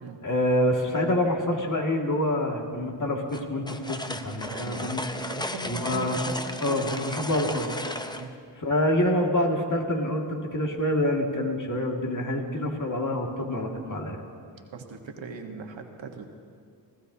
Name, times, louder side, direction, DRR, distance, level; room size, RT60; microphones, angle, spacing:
voice 1, 0.2-5.1 5.7-6.2 6.6-7.7 8.6-14.2, left 1 dB, 45° left, 1 dB, 2.2 m, -26 dB
sound 1, 3.3-8.3, left 1 dB, 10° left, 0.7 m, -35 dB
voice 2, 4.4-6.3 6.6-7.0 8.1-8.4 14.7-16.2, right 4 dB, 80° right, 3 dB, 1.4 m, -39 dB
24.5 x 15.0 x 2.8 m, 2.2 s
cardioid pair, 60°, 44 cm